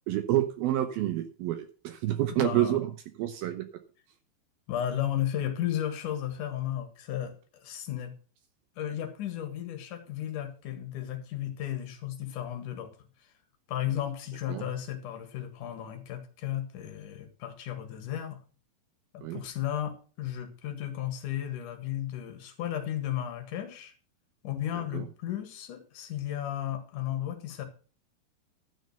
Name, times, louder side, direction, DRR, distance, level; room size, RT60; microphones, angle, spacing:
voice 1, 0.1-3.7 14.5-14.7 19.2-19.4 24.8-25.1, right 13 dB, 80° right, 8 dB, 2.2 m, -29 dB
voice 2, 2.4-2.8 4.7-8.1 8.8-12.9 13.7-18.4 19.1-23.9 24.4-27.6, left 11 dB, 55° left, 7 dB, 2.7 m, -34 dB
12.5 x 6.4 x 6.7 m, 0.38 s
omnidirectional pair, 5.3 m